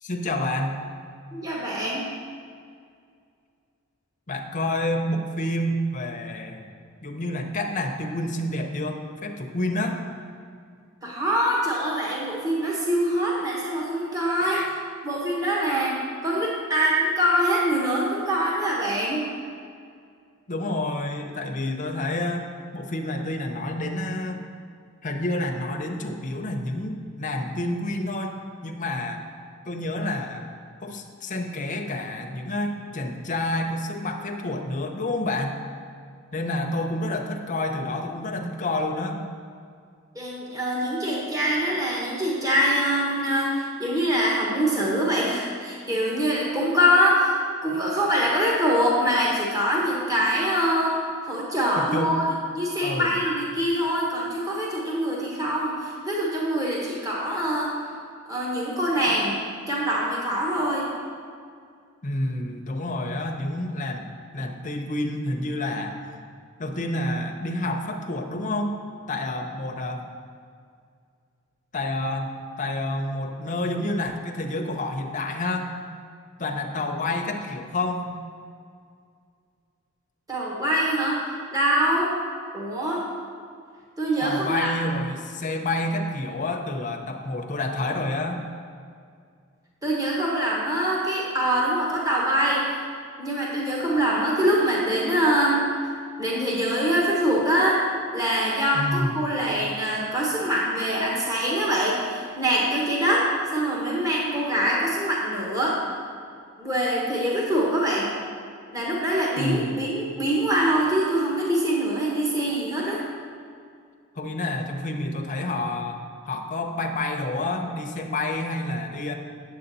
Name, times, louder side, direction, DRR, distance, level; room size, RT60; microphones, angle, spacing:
voice 1, 0.0-0.8 4.3-6.7 7.0-10.0 14.4-14.7 20.5-22.5 22.7-24.4 25.0-28.4 28.6-29.2 29.7-30.5 30.8-35.6 36.3-39.2 51.8-52.1 52.8-53.2 62.0-64.1 64.3-66.0 66.6-68.8 69.1-70.1 71.7-72.3 72.6-75.7 76.4-78.1 84.2-88.4 98.7-99.2 109.4-109.8 114.2-116.0 116.3-119.1, left 1 dB, 40° left, 3 dB, 0.7 m, -29 dB
voice 2, 1.3-2.1 11.0-14.6 15.0-19.2 40.1-52.2 52.5-57.8 58.3-59.4 59.7-60.9 80.3-81.2 81.5-82.2 82.5-83.1 84.0-84.7 89.8-92.8 93.2-95.7 96.2-97.9 98.1-105.8 106.6-108.1 108.7-113.0, equal, 15° right, -4 dB, 1.2 m, -24 dB
8.9 x 7.5 x 4.1 m, 2.2 s
head